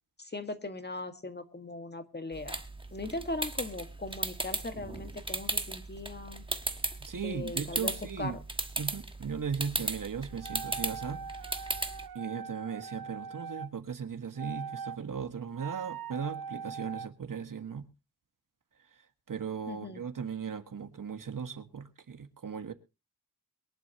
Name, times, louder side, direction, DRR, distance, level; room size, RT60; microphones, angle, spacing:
voice 1, 0.2-2.6 2.9-6.4 7.2-8.4 19.7-20.0, left 2 dB, 30° left, 1.7 m, -39 dB
sound 1, 2.3-12.1, right 2 dB, 15° right, 1.3 m, -37 dB
voice 2, 7.0-8.4 8.8-11.4 12.1-17.8 19.3-22.7, right 6 dB, 65° right, 1.7 m, -37 dB
sound 2, 10.3-13.7 14.4-15.0 15.5-17.1, right 6 dB, 80° right, 0.8 m, -41 dB
23.0 x 11.0 x 2.9 m
wide cardioid pair, 135°, 36 cm